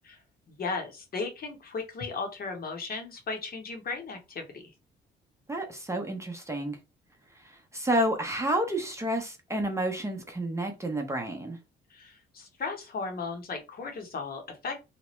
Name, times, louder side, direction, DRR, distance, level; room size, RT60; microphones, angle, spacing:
voice 1, 0.5-4.7 11.9-14.8, left 4 dB, 50° left, 0.9 m, -36 dB
voice 2, 5.5-6.8 7.7-11.6, right 1 dB, 15° right, 0.6 m, -30 dB
2.9 x 2.1 x 3.0 m
cardioid pair, 90°, 20 cm